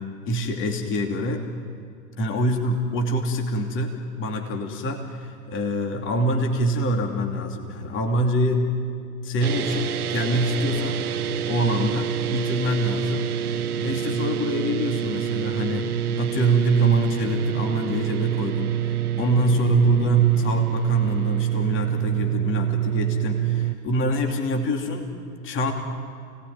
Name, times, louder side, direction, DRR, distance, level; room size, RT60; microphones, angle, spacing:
voice 1, 0.0-1.5 2.2-8.6 9.2-11.0 11.5-13.3 13.8-25.1 25.4-25.7, right 1 dB, 25° left, 3 dB, 2.7 m, -25 dB
sound 1, 9.4-23.8, right 10 dB, 65° right, 0.8 m, -26 dB
29.0 x 19.0 x 9.3 m, 2.3 s
figure-of-eight pair, 105°, 47 cm